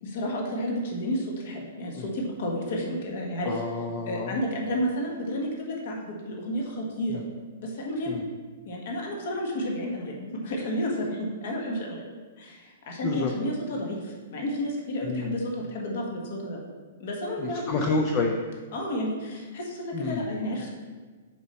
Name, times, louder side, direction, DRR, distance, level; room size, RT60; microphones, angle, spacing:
voice 1, 0.0-3.6 4.1-7.2 7.6-8.2 8.7-12.0 12.4-16.6 17.0-17.8 18.7-20.7, equal, 50° left, 0 dB, 1.4 m, -31 dB
voice 2, 3.4-4.4 7.1-7.2 8.1-8.2 13.0-13.3 15.0-15.4 17.4-18.4 19.9-20.3, left 3 dB, 25° left, 2 dB, 0.5 m, -29 dB
6.9 x 5.5 x 4.3 m, 1.4 s
hypercardioid pair, 170°, 0 cm